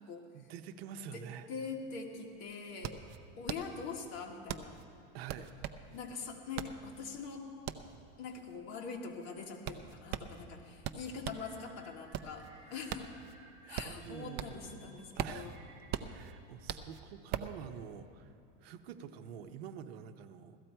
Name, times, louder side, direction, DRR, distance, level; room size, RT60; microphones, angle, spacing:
voice 1, 0.3-1.5 5.1-5.5 13.6-14.9 15.2-15.5 16.0-18.3 18.6-20.6, right 8 dB, 75° right, 9 dB, 0.9 m, -47 dB
voice 2, 1.0-3.0 3.4-4.8 5.9-7.5 8.2-13.1 13.7-15.5, left 5 dB, 55° left, 1 dB, 1.8 m, -43 dB
sound 1, 1.9-2.0 2.2-11.5 11.9-14.7 15.0-17.6, right 10 dB, 35° right, 0.5 m, -41 dB
sound 2, 11.3-16.4, right 2 dB, 5° right, 4.1 m, -61 dB
16.5 x 14.0 x 4.5 m, 2.7 s
supercardioid pair, 155°, 31 cm